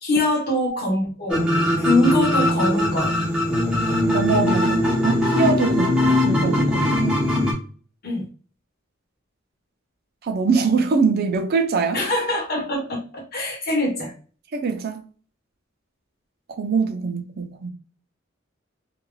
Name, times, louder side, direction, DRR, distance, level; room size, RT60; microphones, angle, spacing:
voice 1, 0.0-1.5 1.8-3.2 8.0-8.3 11.9-14.1, left 1 dB, 50° left, 1.0 m, -23 dB
sound 1, 1.3-7.5, left 1 dB, 5° right, 0.8 m, -20 dB
voice 2, 4.1-7.2 10.2-12.0 14.5-15.0 16.5-17.7, right 4 dB, 50° right, 0.5 m, -23 dB
3.2 x 2.4 x 2.2 m
head